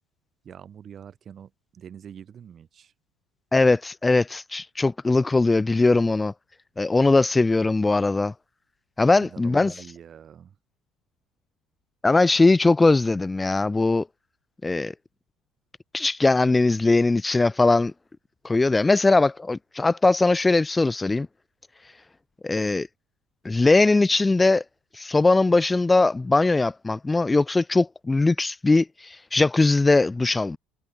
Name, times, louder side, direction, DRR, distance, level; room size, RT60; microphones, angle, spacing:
voice 1, 0.4-2.9 9.2-10.6, right 8 dB, 45° right, 7.9 m, -44 dB
voice 2, 3.5-6.3 6.8-8.3 9.0-9.7 12.0-14.1 14.6-14.9 15.9-17.9 18.4-21.3 22.4-22.9 23.4-24.6 24.9-30.6, left 3 dB, 15° left, 0.4 m, -20 dB
hypercardioid pair, 75°, 0 cm